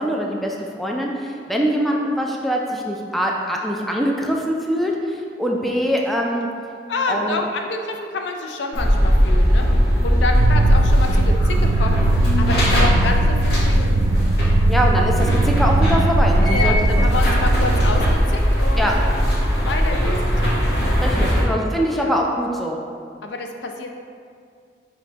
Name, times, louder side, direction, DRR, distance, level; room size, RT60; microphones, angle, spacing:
voice 1, 0.0-6.5 7.1-7.4 12.5-13.1 14.7-16.8 17.1-17.2 18.8-18.9 21.0-22.8, equal, ahead, -1 dB, 0.3 m, -23 dB
voice 2, 6.9-14.1 16.5-19.0 19.6-20.5 21.0-21.6 21.9-22.2 23.2-24.0, left 3 dB, 85° left, 3 dB, 0.4 m, -28 dB
sound 1, 8.7-21.4, equal, 65° left, 0.9 m, -18 dB
sound 2, 10.3-18.2, right 2 dB, 90° right, 0.4 m, -21 dB
5.2 x 3.0 x 2.8 m, 2.2 s
head